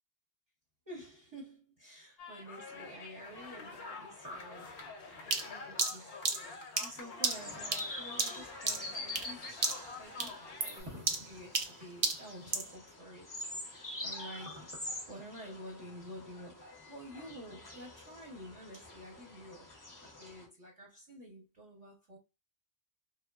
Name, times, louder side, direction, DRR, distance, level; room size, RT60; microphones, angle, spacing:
voice 1, 0.9-6.1 6.4-9.6 10.0-19.7 20.2-22.2, equal, 35° right, 0.7 m, -50 dB
sound 1, 2.2-10.8, left 4 dB, 65° left, 0.8 m, -47 dB
sound 2, 5.3-9.4 9.6-9.9 10.2-12.7, right 4 dB, 55° right, 0.4 m, -34 dB
sound 3, 7.2-20.5, left 2 dB, 25° left, 0.5 m, -46 dB
2.9 x 2.0 x 2.3 m
omnidirectional pair, 1.2 m